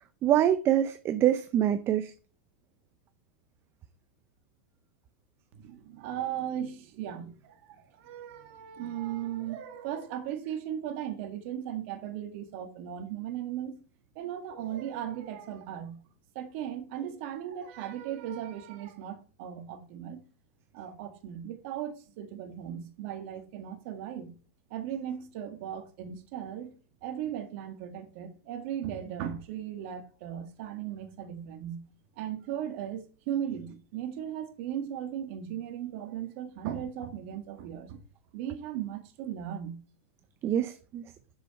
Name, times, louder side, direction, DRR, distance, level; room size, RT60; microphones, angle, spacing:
voice 1, 0.2-2.1 40.4-41.0, right 11 dB, 30° right, 0.7 m, -25 dB
voice 2, 5.5-13.8 14.1-16.0 16.3-20.2 20.7-24.3 24.7-26.7 27.0-31.8 32.2-38.0 38.3-39.8, right 10 dB, 55° right, 1.7 m, -37 dB
7.0 x 6.8 x 4.2 m
hypercardioid pair, 120°, 8 cm